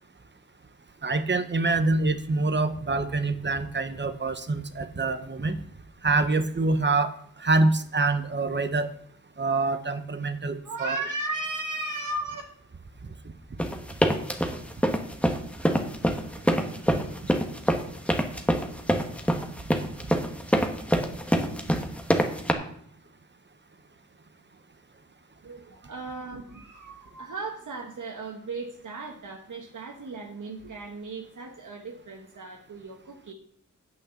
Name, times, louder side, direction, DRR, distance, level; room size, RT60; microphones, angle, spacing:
voice 1, 1.0-5.6 6.0-8.9 9.4-11.0 13.0-13.1 16.9-17.0, right 3 dB, 35° right, 10 dB, 1.0 m, -26 dB
voice 2, 10.6-12.4 25.4-33.3, right 2 dB, 70° right, 1 dB, 1.3 m, -36 dB
sound 1, 13.6-22.5, equal, 5° left, 1.3 m, -24 dB
8.8 x 6.3 x 7.1 m, 0.64 s
wide cardioid pair, 100°, 32 cm